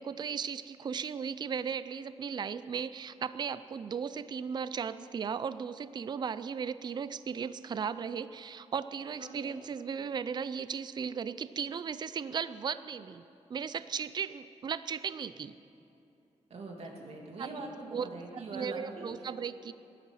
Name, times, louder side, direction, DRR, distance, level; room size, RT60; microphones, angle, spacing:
voice 1, 0.0-13.2 13.5-15.5 17.4-17.5 17.9-19.7, right 6 dB, 35° right, 14 dB, 0.4 m, -36 dB
voice 2, 9.2-9.7 16.5-19.1, right 2 dB, 55° right, 0 dB, 2.5 m, -43 dB
19.0 x 11.5 x 5.6 m, 2.8 s
wide cardioid pair, 140°, 12 cm